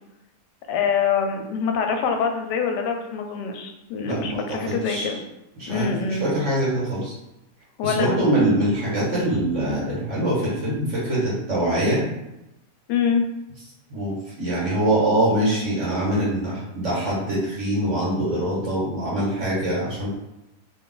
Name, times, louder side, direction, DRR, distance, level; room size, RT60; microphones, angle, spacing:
voice 1, 0.7-5.2 5.7-6.3 7.8-8.2 12.9-13.2, left 6 dB, 90° left, 4 dB, 1.2 m, -24 dB
voice 2, 4.0-5.2 5.6-7.1 7.8-12.0 13.9-20.1, right 1 dB, 45° right, -7 dB, 1.8 m, -24 dB
3.3 x 2.4 x 3.8 m, 0.92 s
omnidirectional pair, 1.8 m